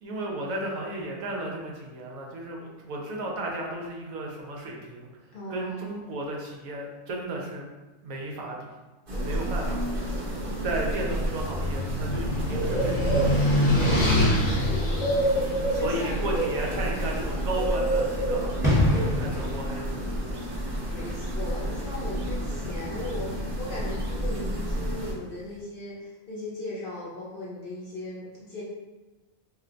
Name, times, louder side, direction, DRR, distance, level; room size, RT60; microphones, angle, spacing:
voice 1, 0.0-5.1 5.5-7.7 8.0-8.7 9.2-9.8 10.6-13.8 15.8-18.8 19.1-20.4 22.5-22.8, right 2 dB, 80° right, -1 dB, 1.1 m, -34 dB
voice 2, 5.3-5.9 9.7-10.6 14.7-16.4 20.9-28.6, left 2 dB, 60° left, -6 dB, 0.6 m, -38 dB
sound 1, 9.1-25.1, right 1 dB, 45° right, 0.9 m, -29 dB
sound 2, 10.6-16.8, left 1 dB, 25° left, 0.8 m, -26 dB
sound 3, 18.6-25.1 25.4-25.6, left 1 dB, 5° right, 0.8 m, -30 dB
2.6 x 2.2 x 3.8 m, 1.1 s
omnidirectional pair, 1.4 m